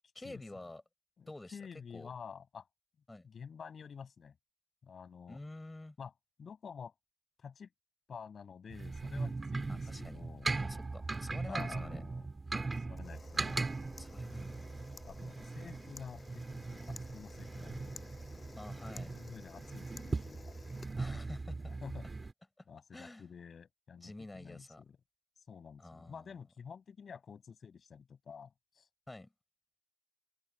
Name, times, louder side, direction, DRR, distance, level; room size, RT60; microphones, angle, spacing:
voice 1, 0.1-0.8 1.3-1.6 1.9-2.1 3.1-3.3 5.3-6.0 9.7-10.2 10.6-12.0 14.0-14.6 18.6-19.1 21.0-21.7 22.6-23.3 24.0-24.8 25.8-26.4 29.1-29.3, left 2 dB, 20° left, 6.8 m, -48 dB
voice 2, 1.2-2.7 3.2-4.3 4.8-5.4 6.0-6.1 6.4-6.9 7.4-7.7 8.1-10.5 11.3-12.3 12.8-13.7 15.0-18.0 19.0-20.5 21.7-22.1 22.7-25.0 25.4-28.9, left 6 dB, 75° left, 6.8 m, -50 dB
sound 1, 8.7-22.3, right 3 dB, 40° right, 4.2 m, -39 dB
Camera, 13.0-21.7, left 3 dB, 40° left, 7.6 m, -55 dB
wide cardioid pair, 90°, 0 cm